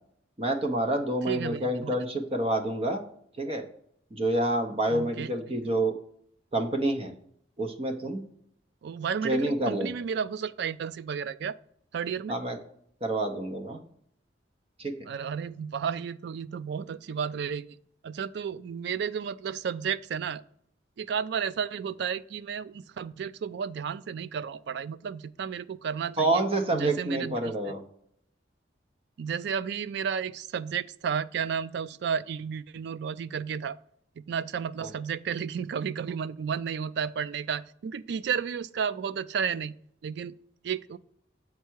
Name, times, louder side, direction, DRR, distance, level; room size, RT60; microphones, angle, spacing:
voice 1, 0.4-3.0 3.4-3.7 4.1-5.9 6.5-7.1 7.6-8.3 9.2-9.9 12.3-12.6 13.0-13.8 14.8-14.9 26.2-27.8 34.8-34.9, right 1 dB, 30° right, 5 dB, 0.7 m, -28 dB
voice 2, 1.3-1.9 4.9-5.3 8.8-11.6 11.9-12.4 15.1-17.8 18.0-20.4 21.0-26.4 26.7-27.5 29.2-33.8 34.2-39.7 40.0-40.4 40.6-41.0, right 7 dB, 65° right, 17 dB, 0.3 m, -32 dB
7.3 x 4.6 x 4.5 m, 0.70 s
head